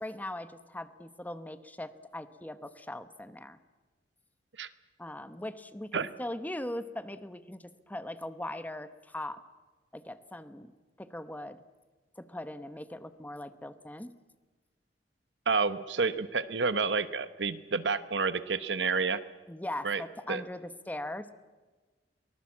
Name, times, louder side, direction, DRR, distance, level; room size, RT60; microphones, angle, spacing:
voice 1, 0.0-3.6 5.0-9.4 9.9-10.7 11.0-11.6 12.2-14.1 19.5-21.3, left 1 dB, 10° left, 11 dB, 1.0 m, -40 dB
voice 2, 15.5-19.2 19.8-20.0 20.3-20.4, right 4 dB, 80° right, 13 dB, 1.0 m, -29 dB
23.5 x 19.0 x 7.4 m, 1.3 s
head